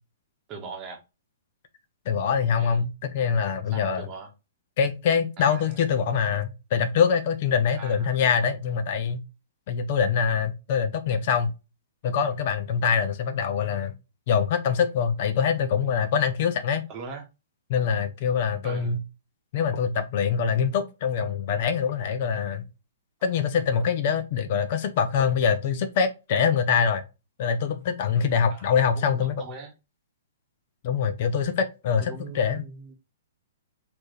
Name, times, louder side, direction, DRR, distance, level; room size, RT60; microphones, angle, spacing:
voice 1, 0.5-1.0 2.4-2.9 3.7-4.3 5.4-5.8 7.8-8.1 16.9-17.3 18.6-19.0 28.5-29.7 32.0-32.9, right 4 dB, 25° right, 1.0 m, -41 dB
voice 2, 2.1-4.1 4.8-9.2 9.7-11.5 12.0-13.9 14.3-16.8 17.7-19.0 19.5-22.6 23.2-27.0 27.4-29.4 30.8-32.6, left 6 dB, 45° left, 0.6 m, -24 dB
4.3 x 2.8 x 3.2 m
hypercardioid pair, 150°, 0 cm